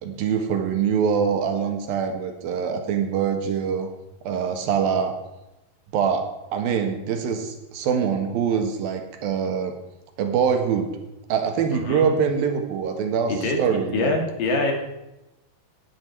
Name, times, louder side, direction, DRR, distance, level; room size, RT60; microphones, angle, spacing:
voice 1, 0.0-3.9 4.2-5.1 5.9-9.7 10.2-10.9 11.3-14.2, right 7 dB, 80° right, 5 dB, 3.3 m, -24 dB
voice 2, 11.7-12.2 13.3-14.7, left 2 dB, 70° left, 3 dB, 3.8 m, -25 dB
18.5 x 10.5 x 4.6 m, 0.96 s
omnidirectional pair, 4.1 m